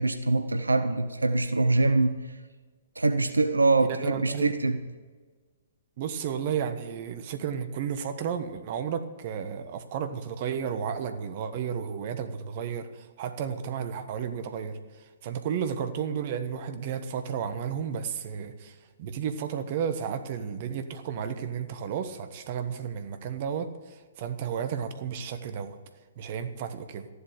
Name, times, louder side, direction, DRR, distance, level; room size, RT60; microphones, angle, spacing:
voice 1, 0.0-2.2 3.0-4.8, right 3 dB, 85° right, 10 dB, 0.8 m, -24 dB
voice 2, 3.9-4.8 6.0-14.8 15.2-25.8 26.2-27.1, right 7 dB, 45° right, 9 dB, 1.4 m, -33 dB
14.0 x 11.5 x 6.7 m, 1.4 s
figure-of-eight pair, 120°, 0 cm